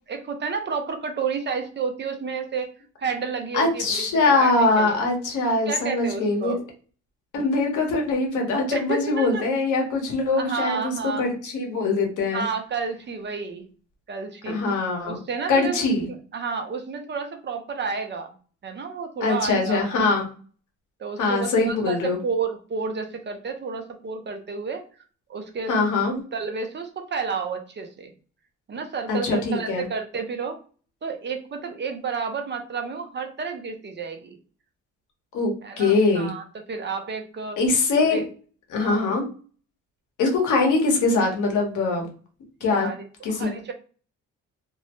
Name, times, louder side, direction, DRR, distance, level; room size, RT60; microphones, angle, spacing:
voice 1, 0.1-2.7 3.0-4.0 4.3-5.0 5.7-6.6 8.7-9.4 10.4-11.3 12.3-13.7 14.1-14.6 15.0-15.8 16.3-18.3 18.6-20.0 21.0-24.8 25.3-25.7 26.3-28.1 28.7-30.6 31.0-34.4 35.6-37.6 38.1-38.2 38.8-39.1 42.6-43.7, right 5 dB, 35° right, 5 dB, 0.6 m, -31 dB
voice 2, 3.5-6.6 7.3-12.4 14.5-15.2 15.5-16.1 19.2-20.3 21.2-22.2 25.7-26.2 29.1-29.8 35.3-36.3 37.6-38.2 38.7-39.2 40.2-42.1 42.6-42.9 43.2-43.5, left 3 dB, 80° left, 2 dB, 1.0 m, -22 dB
2.5 x 2.0 x 3.0 m, 0.39 s
cardioid pair, 90°, 30 cm